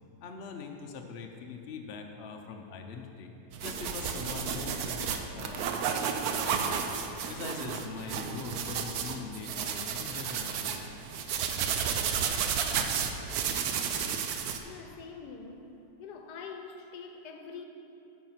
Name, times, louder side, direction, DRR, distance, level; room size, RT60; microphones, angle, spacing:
voice 1, 0.2-3.3 3.6-5.7 6.3-10.8, left 4 dB, 55° left, 3 dB, 0.7 m, -42 dB
sound 1, 3.5-14.6, right 7 dB, 70° right, 1.0 m, -32 dB
voice 2, 14.6-15.7 16.0-17.7, left 5 dB, 70° left, 5 dB, 1.3 m, -45 dB
9.2 x 6.2 x 5.8 m, 3.0 s
omnidirectional pair, 1.9 m